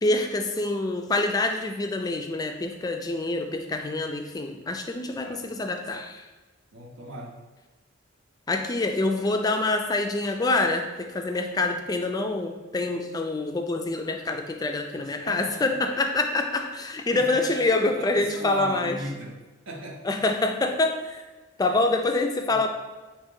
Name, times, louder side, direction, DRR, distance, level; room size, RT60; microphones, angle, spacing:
voice 1, 0.0-6.2 8.5-19.0 20.0-21.2 21.6-22.7, left 2 dB, 20° left, 5 dB, 0.3 m, -26 dB
voice 2, 5.1-5.5 6.7-7.4 14.9-15.6 17.1-19.4 19.7-20.1 22.5-22.6, right 1 dB, 75° right, 0 dB, 0.6 m, -38 dB
4.3 x 2.8 x 3.7 m, 1.2 s
head